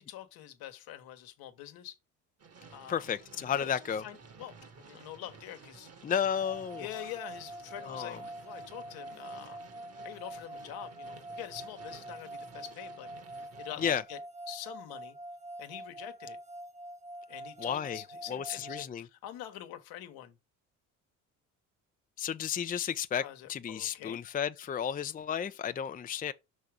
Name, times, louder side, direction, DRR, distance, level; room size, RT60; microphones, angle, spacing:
voice 1, 0.0-2.0 2.7-3.0 3.5-4.5 4.9-5.9 6.8-9.6 10.0-13.1 13.6-14.2 14.5-15.2 15.6-16.4 17.3-20.4 23.2-24.2, left 12 dB, 75° left, 1.3 m, -45 dB
sound 1, 2.4-14.0, right 4 dB, 40° right, 1.7 m, -54 dB
voice 2, 2.9-4.0 6.0-6.9 7.8-8.2 13.8-14.0 17.6-18.0 18.3-19.1 22.2-23.2 23.5-26.3, left 8 dB, 25° left, 0.5 m, -32 dB
sound 2, 6.4-18.9, right 1 dB, 20° right, 0.8 m, -45 dB
5.7 x 4.0 x 4.9 m
hypercardioid pair, 65°, 37 cm